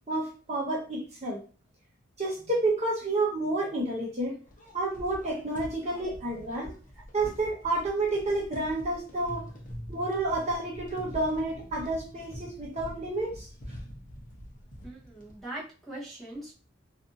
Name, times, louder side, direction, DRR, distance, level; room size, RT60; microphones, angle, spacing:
voice 1, 0.1-1.4 2.2-4.4 4.7-6.7 7.1-9.4 9.9-13.5, right 2 dB, 35° right, -3 dB, 0.7 m, -30 dB
sound 1, 4.5-15.4, equal, 45° left, 0.7 m, -45 dB
voice 2, 14.8-16.5, right 1 dB, ahead, -6 dB, 0.9 m, -41 dB
2.5 x 2.5 x 2.6 m, 0.36 s
head